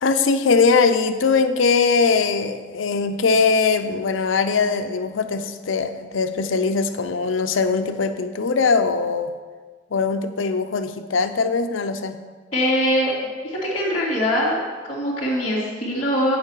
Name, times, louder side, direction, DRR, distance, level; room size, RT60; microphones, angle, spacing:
voice 1, 0.0-9.3 9.9-12.2, left 4 dB, 90° left, 9 dB, 0.6 m, -21 dB
voice 2, 12.5-13.1 13.4-14.6 14.9-16.4, equal, 30° left, -12 dB, 2.1 m, -22 dB
9.6 x 7.2 x 4.7 m, 1.5 s
head